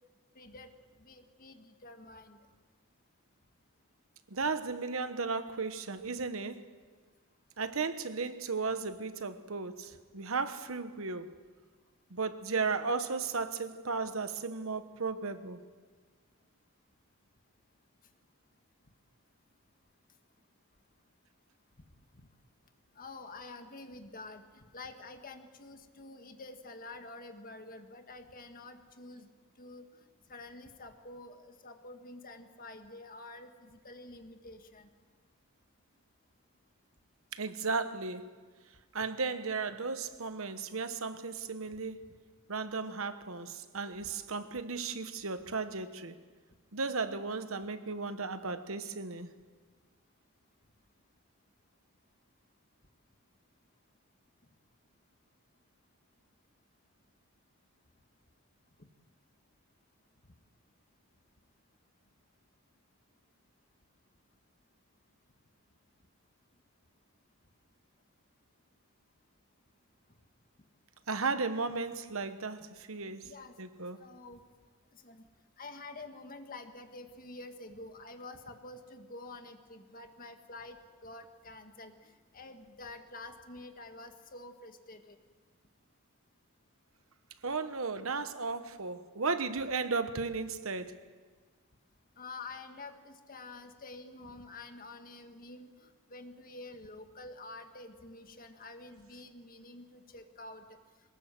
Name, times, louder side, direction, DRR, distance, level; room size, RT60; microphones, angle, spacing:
voice 1, 0.4-0.7 1.0-2.4 22.1-22.2 23.0-29.3 29.6-30.0 30.3-34.9 44.0-44.1 73.2-73.5 74.0-74.4 74.9-75.2 75.6-81.9 82.3-85.2 92.2-100.6, left 2 dB, 40° left, 1.8 m, -48 dB
voice 2, 4.3-6.6 7.6-11.3 12.1-15.6 37.3-38.2 38.9-42.0 42.5-46.2 46.7-49.3 71.1-73.3 73.6-74.0 87.4-91.0, right 4 dB, 65° right, 1.2 m, -35 dB
22.5 x 19.5 x 7.7 m
head